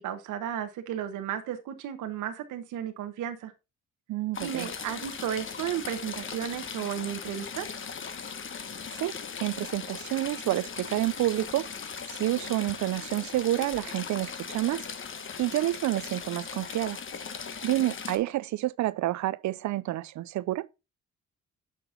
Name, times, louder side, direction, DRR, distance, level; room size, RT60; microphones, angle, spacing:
voice 1, 0.0-3.5 4.4-7.7, right 10 dB, 85° right, 1.2 m, -34 dB
voice 2, 4.1-4.7 9.0-9.1 9.4-11.7 12.1-14.8 15.4-17.0 17.6-20.7, right 15 dB, 70° right, 0.5 m, -29 dB
Stream / Trickle dribble, 4.3-18.2, left 6 dB, 40° left, 1.2 m, -39 dB
7.5 x 6.0 x 3.8 m
cardioid pair, 90°, 30 cm